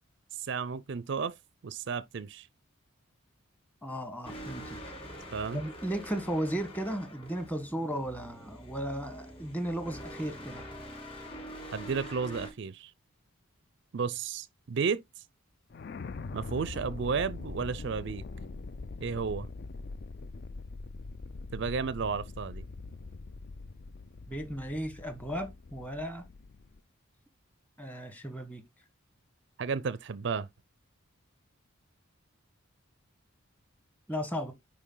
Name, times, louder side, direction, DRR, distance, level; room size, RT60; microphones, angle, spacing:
voice 1, 0.3-1.4 1.6-2.5 5.3-5.6 11.7-12.9 13.9-15.2 16.3-18.2 19.0-19.5 21.5-22.6 29.6-30.5, right 5 dB, 55° right, 0.4 m, -33 dB
voice 2, 3.8-4.8 5.5-10.6 24.3-26.2 27.8-28.6 34.1-34.5, equal, 5° left, 1.3 m, -35 dB
sound 1, 4.2-12.5, equal, 25° left, 4.0 m, -45 dB
sound 2, 15.7-26.8, left 3 dB, 50° left, 0.4 m, -43 dB
9.9 x 4.5 x 3.8 m
head